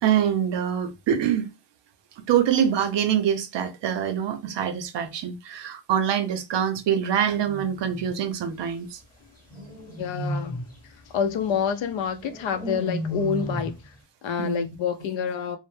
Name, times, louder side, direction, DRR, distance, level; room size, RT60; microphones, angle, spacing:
voice 1, 0.0-1.5 2.3-9.0 14.4-14.7, right 9 dB, 70° right, 0.6 m, -25 dB
sound 1, 7.3-8.2 9.5-10.8 12.2-13.8, equal, 20° left, 0.7 m, -33 dB
voice 2, 9.9-10.6 11.1-13.8 14.2-15.6, left 7 dB, 80° left, 0.5 m, -27 dB
2.0 x 2.0 x 3.0 m
wide cardioid pair, 155°, 45 cm